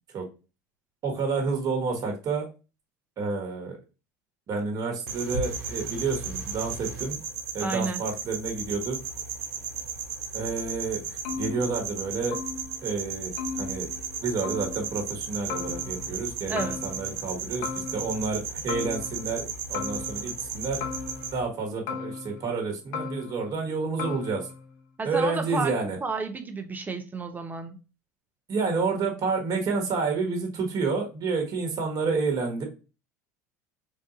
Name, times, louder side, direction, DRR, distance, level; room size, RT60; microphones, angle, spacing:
voice 1, 1.0-2.5 3.2-3.8 4.5-7.2 7.5-9.0 10.3-12.4 12.8-13.9 14.2-20.8 21.3-24.5 25.0-26.0 28.5-32.6, right 4 dB, 40° right, 1.4 m, -29 dB
sound 1, 5.1-21.4, right 5 dB, 80° right, 1.0 m, -35 dB
voice 2, 7.6-8.0 16.5-16.8 25.0-27.8, right 3 dB, 20° right, 0.7 m, -31 dB
sound 2, 11.2-12.1 12.3-12.9 13.4-14.2 14.4-15.0 15.5-16.3 16.6-17.3 17.6-18.4 18.7-19.4 19.7-20.5 20.8-21.6 21.9-22.6 22.9-23.7 24.0-24.7, left 6 dB, 65° left, 0.9 m, -37 dB
3.7 x 2.6 x 2.6 m
hypercardioid pair, 85°, 9 cm